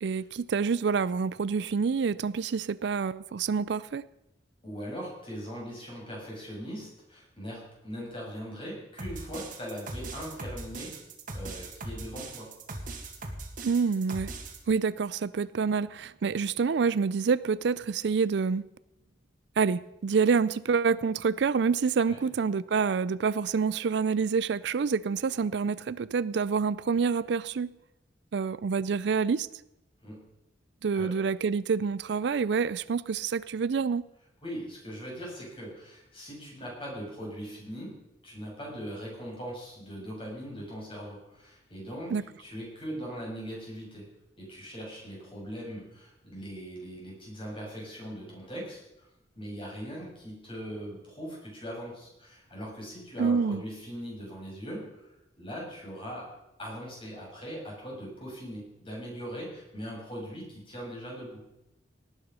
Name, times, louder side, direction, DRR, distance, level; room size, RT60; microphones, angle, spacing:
voice 1, 0.0-4.0 13.6-14.3 14.7-18.6 19.6-27.7 28.3-29.5 30.8-34.1 42.1-42.2 53.2-53.6, right 5 dB, 70° right, 18 dB, 0.4 m, -27 dB
voice 2, 4.6-10.9 11.3-12.5 22.1-22.2 30.0-30.2 30.9-31.1 34.4-37.9 38.2-44.1 44.4-49.1 49.4-54.9 55.4-56.3 56.6-61.4, equal, 30° left, -3 dB, 7.1 m, -40 dB
sound 1, 9.0-14.6, right 2 dB, 50° right, 2.2 m, -39 dB
18.5 x 9.8 x 5.6 m, 0.88 s
head